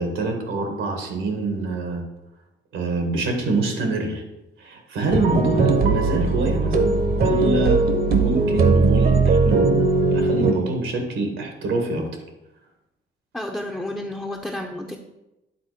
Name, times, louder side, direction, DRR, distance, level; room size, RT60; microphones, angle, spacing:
voice 1, 0.0-2.0 2.7-4.2 4.6-9.8 10.1-12.1, right 2 dB, 80° right, 3 dB, 1.7 m, -25 dB
sound 1, 5.1-10.5, right 3 dB, 50° right, 1.1 m, -19 dB
voice 2, 13.3-15.0, left 1 dB, 5° left, -1 dB, 0.7 m, -31 dB
9.4 x 3.8 x 5.0 m, 0.96 s
cardioid pair, 90°, 20 cm